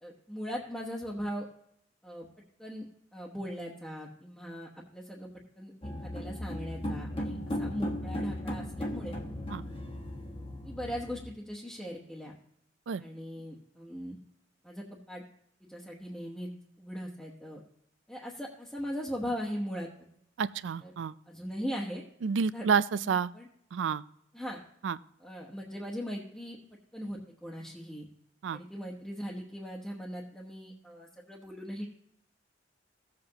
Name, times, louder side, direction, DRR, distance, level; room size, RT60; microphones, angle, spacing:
voice 1, 0.0-1.5 2.0-2.3 2.6-5.3 5.6-9.1 10.6-12.3 13.0-14.2 14.6-15.2 15.7-16.5 16.8-17.6 18.1-19.9 20.8-20.9 21.3-22.0 22.5-22.7 23.0-23.5 24.3-24.6 25.2-26.6 26.9-28.1 28.5-31.9, equal, 5° left, -4 dB, 1.1 m, -39 dB
sound 1, 5.8-11.3, left 1 dB, 30° left, 1.2 m, -36 dB
voice 2, 20.4-21.1 22.2-23.3 23.7-24.0 24.8-25.0 28.4-28.6, right 6 dB, 80° right, 16 dB, 0.4 m, -29 dB
16.5 x 7.7 x 2.9 m, 0.73 s
head